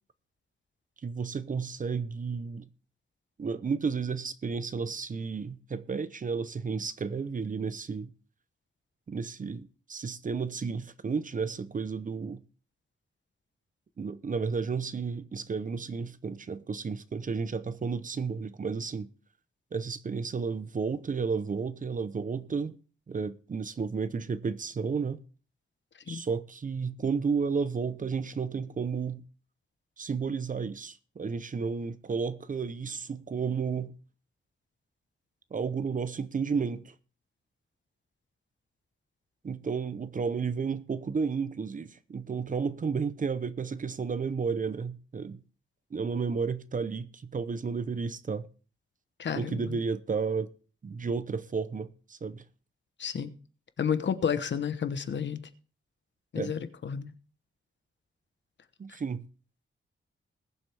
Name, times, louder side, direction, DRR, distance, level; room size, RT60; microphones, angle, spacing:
voice 1, 1.0-2.7 3.4-8.1 9.1-12.4 14.0-19.1 19.7-22.8 23.1-25.2 26.1-29.2 30.0-33.9 35.5-36.9 39.4-45.4 45.9-48.5 49.3-50.5 50.8-52.4 56.3-56.5 58.8-59.2, right 5 dB, 40° right, 0.7 m, -32 dB
voice 2, 49.2-49.8 53.0-53.3 53.8-55.4 56.3-57.1, left 7 dB, 60° left, 1.0 m, -31 dB
20.5 x 7.5 x 3.4 m
wide cardioid pair, 150°, 21 cm